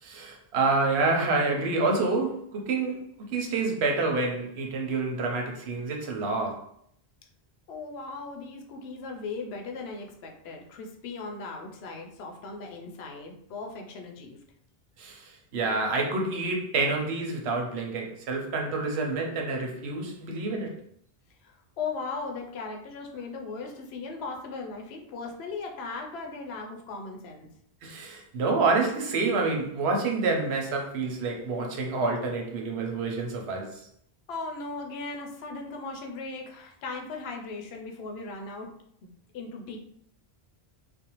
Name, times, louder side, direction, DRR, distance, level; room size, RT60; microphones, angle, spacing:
voice 1, 0.0-6.6 15.0-20.8 27.8-33.8, right 3 dB, 85° right, 0.9 m, -28 dB
voice 2, 7.7-14.4 21.4-27.5 34.3-38.7 39.0-39.8, left 4 dB, 80° left, 0.8 m, -38 dB
2.5 x 2.1 x 2.9 m
omnidirectional pair, 1.1 m